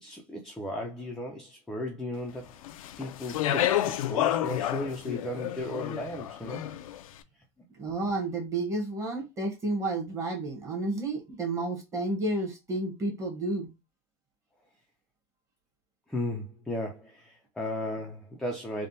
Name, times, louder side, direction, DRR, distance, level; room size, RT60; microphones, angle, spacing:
voice 1, 0.0-2.5 3.0-6.7 16.1-18.9, left 1 dB, 5° left, 0.3 m, -35 dB
Speech, 2.6-7.0, left 12 dB, 85° left, 0.4 m, -30 dB
voice 2, 7.8-13.7, right 2 dB, 20° right, 1.0 m, -31 dB
3.4 x 2.1 x 2.6 m
supercardioid pair, 135°, 17 cm